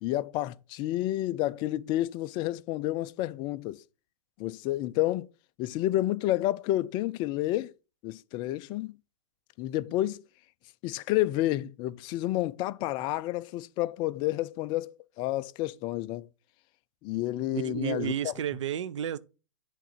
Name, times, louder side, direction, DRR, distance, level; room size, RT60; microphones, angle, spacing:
voice 1, 0.0-3.8 4.4-5.3 5.6-7.7 8.0-8.9 9.6-10.2 10.8-16.3 17.0-18.3, left 15 dB, 30° left, 0.4 m, -30 dB
voice 2, 17.5-19.2, right 10 dB, 65° right, 0.6 m, -32 dB
8.3 x 3.9 x 5.8 m
hypercardioid pair, 115°, 17 cm